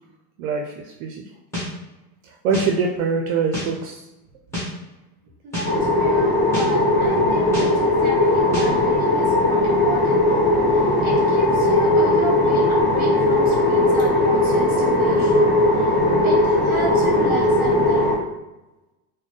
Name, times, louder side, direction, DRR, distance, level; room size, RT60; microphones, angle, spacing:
voice 1, 0.4-0.7 1.0-1.3 2.4-4.0 6.7-6.8 7.2-7.5 7.7-7.9 10.5-10.7, right 5 dB, 60° right, 1 dB, 0.5 m, -24 dB
sound 1, 1.5-1.7 2.5-2.7 3.5-3.7 4.5-4.7 5.5-5.7 6.5-6.7 7.5-7.7 8.5-8.7, left 1 dB, 5° left, 1.4 m, -27 dB
voice 2, 5.4-15.9 16.2-18.2, right 3 dB, 20° right, -4 dB, 1.2 m, -32 dB
sound 2, 5.6-18.2, left 1 dB, 20° left, 0.7 m, -18 dB
4.1 x 2.1 x 3.1 m, 1.0 s
supercardioid pair, 150°, 44 cm